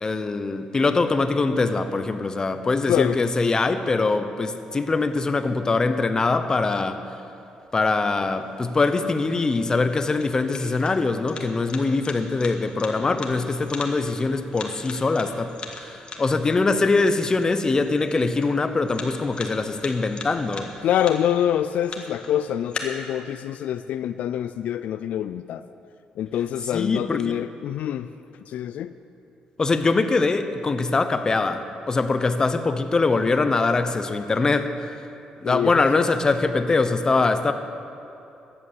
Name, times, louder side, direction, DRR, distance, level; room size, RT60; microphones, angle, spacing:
voice 1, 0.0-7.0 7.7-15.5 15.8-20.7 26.7-27.3 29.6-35.0 35.4-37.5, left 3 dB, 30° left, 9 dB, 0.8 m, -23 dB
voice 2, 2.9-3.2 20.8-25.6 26.2-28.1 28.5-28.9 35.4-35.9, left 10 dB, 75° left, 12 dB, 0.3 m, -25 dB
sound 1, 7.8-22.8, left 4 dB, 45° left, 1.7 m, -41 dB
14.0 x 9.7 x 7.3 m, 2.7 s
cardioid pair, 100°, 2 cm